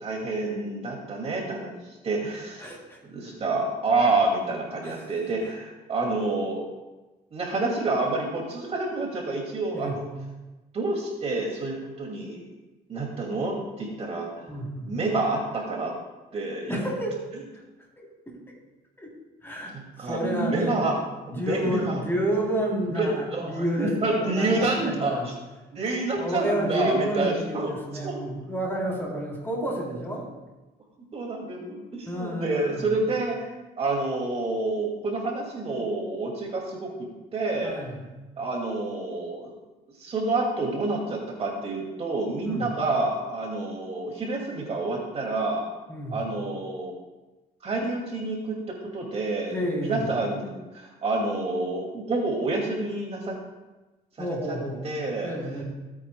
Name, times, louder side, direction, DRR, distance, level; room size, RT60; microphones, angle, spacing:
voice 1, 0.0-1.7 2.0-2.8 3.0-6.7 7.3-10.0 10.7-12.4 12.9-14.5 14.8-15.9 16.3-16.8 19.7-21.0 21.3-22.0 22.9-25.3 25.7-27.7 28.0-28.2 31.1-37.7 38.4-39.5 40.0-45.6 46.1-46.9 47.6-48.6 48.9-53.3 54.2-54.6 54.8-55.3, right 2 dB, 40° right, 0 dB, 2.3 m, -28 dB
voice 2, 2.6-3.0 4.8-5.1 9.7-10.0 14.5-14.9 16.7-17.2 18.0-18.6 19.0-19.1 19.4-21.0 21.3-23.9 24.2-25.3 26.2-30.3 32.1-32.9 37.6-38.0 42.4-42.8 45.9-46.2 49.5-50.1 54.2-54.8 55.2-55.6, equal, 15° left, -2 dB, 3.2 m, -30 dB
17.5 x 8.6 x 2.2 m, 1.1 s
cardioid pair, 110°, 17 cm